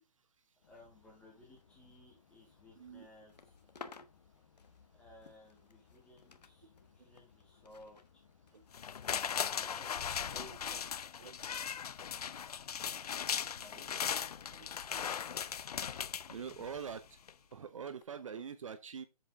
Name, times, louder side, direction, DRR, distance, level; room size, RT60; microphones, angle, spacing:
sound 1, 0.6-10.5, left 6 dB, 45° left, 1.5 m, -66 dB
voice 1, 0.7-3.5 5.0-8.0 9.2-11.0 12.8-14.0, left 1 dB, 5° left, 2.3 m, -58 dB
voice 2, 2.8-3.1 8.5-8.6 10.5-10.8 11.2-11.3 14.6-14.7 16.3-17.0 17.5-19.1, right 7 dB, 55° right, 0.9 m, -44 dB
sound 2, 3.2-6.5 6.8-11.7 12.0-12.3 13.1-17.3 17.9-18.0, left 5 dB, 90° left, 1.2 m, -59 dB
sound 3, 8.7-16.9 17.3-17.4, left 8 dB, 70° left, 0.5 m, -38 dB
7.9 x 6.7 x 3.6 m
hypercardioid pair, 170°, 20 cm